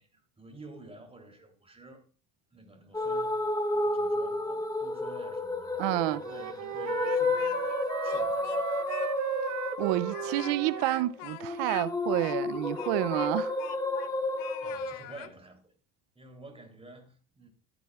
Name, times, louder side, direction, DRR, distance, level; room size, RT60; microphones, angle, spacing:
voice 1, 0.0-2.1 2.5-5.8 6.1-8.7 9.6-9.7 14.6-15.7 16.2-17.5, right 2 dB, 15° right, 3.3 m, -51 dB
sound 1, 2.9-15.0, left 2 dB, 10° left, 0.9 m, -32 dB
voice 2, 5.8-6.2 9.8-13.6, right 16 dB, 80° right, 0.7 m, -29 dB
Wind instrument woodwind instrument, 5.9-11.1, right 14 dB, 45° right, 0.5 m, -36 dB
Speech, 6.8-7.7 8.0-9.1 9.4-9.5 10.0-14.1 14.4-15.3, left 15 dB, 85° left, 0.8 m, -45 dB
13.5 x 9.1 x 2.4 m
supercardioid pair, 90°, 42 cm